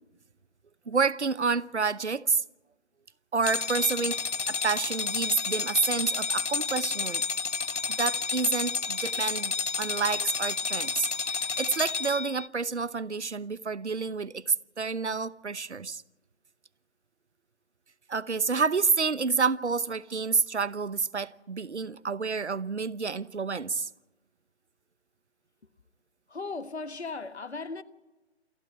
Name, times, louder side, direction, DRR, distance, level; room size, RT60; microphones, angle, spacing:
voice 1, 0.9-2.4 3.3-4.2 4.5-7.2 7.9-16.0 18.1-23.9, right 5 dB, 75° right, 0.9 m, -29 dB
sound 1, 3.4-12.5, left 5 dB, 85° left, 0.8 m, -30 dB
voice 2, 26.3-27.8, left 3 dB, 70° left, 1.4 m, -37 dB
28.0 x 11.5 x 8.7 m
figure-of-eight pair, 145°, 34 cm